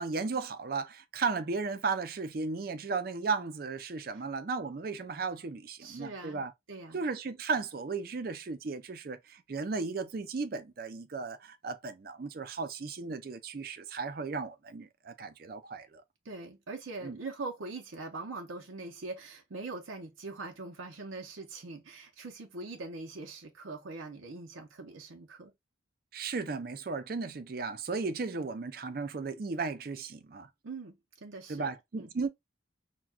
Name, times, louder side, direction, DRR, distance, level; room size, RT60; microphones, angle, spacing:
voice 1, 0.0-6.5 6.9-16.0 17.0-17.2 26.1-30.5 31.5-32.3, right 4 dB, 50° right, 0.4 m, -35 dB
voice 2, 5.8-7.0 16.2-25.5 30.6-32.1, right 3 dB, 85° right, 0.7 m, -42 dB
5.8 x 2.2 x 2.3 m
head